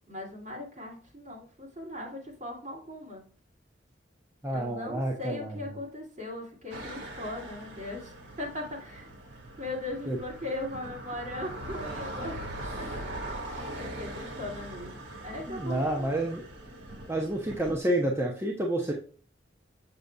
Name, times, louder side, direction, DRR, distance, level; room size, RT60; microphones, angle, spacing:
voice 1, 0.1-3.2 4.5-8.1 8.4-9.1 9.6-12.4 12.8-16.1, left 1 dB, 40° right, -2 dB, 2.5 m, -39 dB
voice 2, 4.4-5.6 10.1-10.2 15.5-16.4 17.1-18.9, right 1 dB, 15° right, -1 dB, 0.7 m, -29 dB
sound 1, 6.7-17.8, right 1 dB, 80° right, 1.7 m, -41 dB
6.8 x 6.4 x 2.3 m, 0.42 s
head